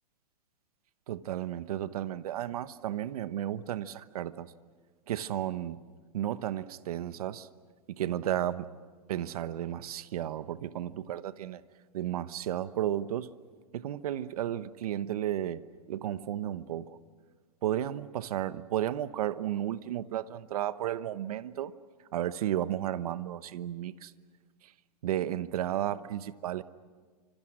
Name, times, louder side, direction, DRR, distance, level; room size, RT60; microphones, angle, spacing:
voice 1, 1.1-4.5 5.1-5.8 6.1-7.5 7.9-8.7 9.1-11.6 11.9-13.3 13.7-15.6 15.9-17.0 17.6-21.7 22.1-24.1 24.6-24.7 25.0-26.6, right 11 dB, 65° right, 14 dB, 1.1 m, -33 dB
29.5 x 26.0 x 6.3 m, 1.5 s
hypercardioid pair, 155°, 21 cm